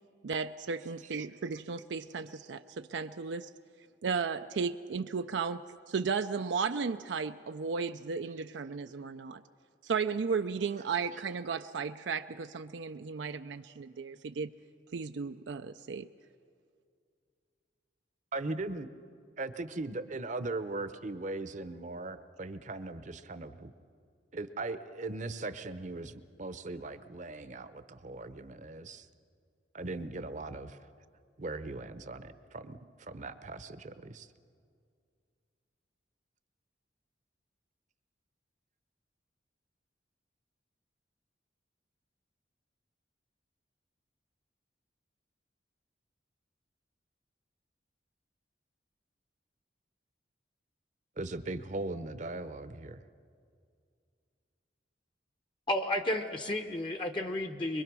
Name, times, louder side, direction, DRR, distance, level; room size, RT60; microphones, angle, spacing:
voice 1, 0.2-3.5 4.0-5.6 5.9-9.4 9.8-14.5 14.9-16.1, right 5 dB, 75° right, 8 dB, 0.5 m, -34 dB
voice 2, 18.3-18.9 19.4-23.7 24.3-26.1 26.4-29.0 29.7-30.8 31.4-34.3 51.2-53.0, right 2 dB, 40° right, 12 dB, 0.8 m, -39 dB
voice 3, 55.7-57.8, left 1 dB, 25° left, 7 dB, 0.8 m, -32 dB
24.0 x 22.5 x 6.1 m, 2.3 s
head